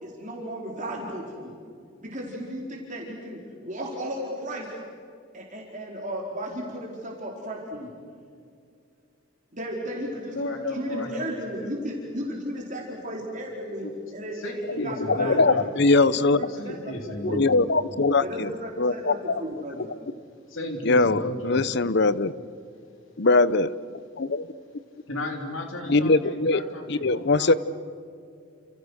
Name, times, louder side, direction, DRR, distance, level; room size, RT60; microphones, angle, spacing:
voice 1, 0.0-1.5 2.0-4.7 5.3-7.9 9.5-10.4 10.7-13.9 14.1-15.7 16.1-17.5 18.2-19.9, equal, 35° right, -2 dB, 4.4 m, -34 dB
voice 2, 10.3-11.7 13.7-13.9 14.3-15.7 16.5-17.7 20.5-21.7 25.1-27.6, left 1 dB, 70° left, 3 dB, 3.7 m, -34 dB
voice 3, 14.8-16.5 17.2-18.5 18.8-19.3 19.8-19.9 20.8-22.3 23.2-23.7 24.2-24.5 25.9-26.6 26.9-27.5, left 3 dB, 55° left, 17 dB, 0.8 m, -21 dB
30.0 x 28.0 x 6.5 m, 2.4 s
head